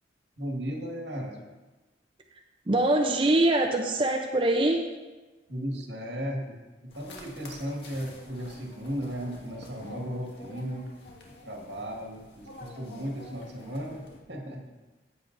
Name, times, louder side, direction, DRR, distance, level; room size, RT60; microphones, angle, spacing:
voice 1, 0.4-1.4 5.5-6.6 7.0-11.0 11.4-14.0 14.3-14.7, equal, 80° right, 1 dB, 1.8 m, -35 dB
voice 2, 2.7-4.8, right 1 dB, 30° right, 2 dB, 0.6 m, -23 dB
sound 1, 6.9-14.2, left 2 dB, 80° left, 1.7 m, -48 dB
14.5 x 8.3 x 2.6 m, 1.2 s
head